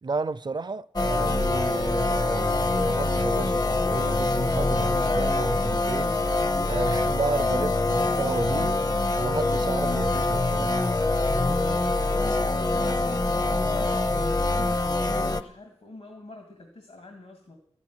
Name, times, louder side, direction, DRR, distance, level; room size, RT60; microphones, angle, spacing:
voice 1, 0.0-6.1 6.7-8.8 9.2-11.1, right 3 dB, 45° right, 0.5 m, -32 dB
sound 1, 1.0-15.4, left 2 dB, 40° left, 0.7 m, -24 dB
voice 2, 11.7-17.6, left 2 dB, 75° left, 2.3 m, -46 dB
13.5 x 7.1 x 9.6 m
cardioid pair, 50°, 11 cm